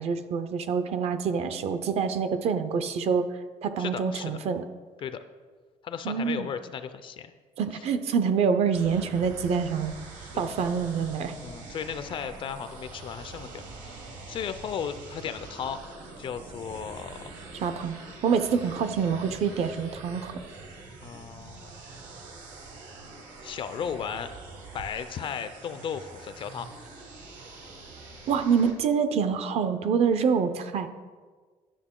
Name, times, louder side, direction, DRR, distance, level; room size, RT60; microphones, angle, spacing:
voice 1, 0.0-3.3 3.6-4.6 6.0-6.5 7.6-9.9 10.4-11.4 17.6-18.0 18.2-20.3 28.3-30.9, right 6 dB, 50° right, 10 dB, 0.5 m, -26 dB
voice 2, 3.8-4.4 5.0-5.2 5.8-7.3 7.8-7.9 10.2-10.5 11.4-15.8 16.2-17.3 21.0-21.7 23.4-24.3 24.7-26.7, left 7 dB, 40° left, 11 dB, 0.4 m, -35 dB
sound 1, 8.7-28.7, right 3 dB, 75° right, 1.7 m, -44 dB
10.0 x 6.6 x 3.7 m, 1.5 s
cardioid pair, 165°, 13 cm